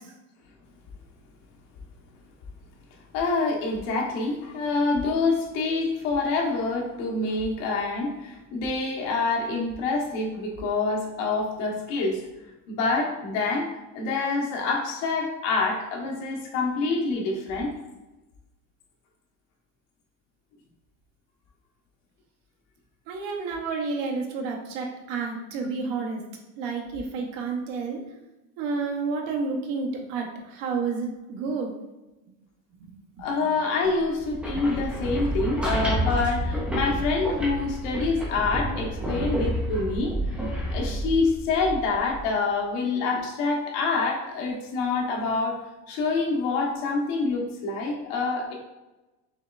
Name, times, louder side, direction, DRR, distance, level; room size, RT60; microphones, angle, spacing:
voice 1, 3.1-12.2 12.7-13.7 13.9-17.7 33.2-40.4 40.7-45.6 45.9-48.5, left 3 dB, 75° left, 0 dB, 1.2 m, -26 dB
voice 2, 23.1-26.2 26.6-28.0 28.6-31.7 32.8-33.2, right 4 dB, 75° right, 1 dB, 1.0 m, -30 dB
sound 1, 34.2-42.2, equal, 5° right, 0.4 m, -29 dB
5.5 x 3.2 x 2.4 m, 1.1 s
cardioid pair, 175°, 38 cm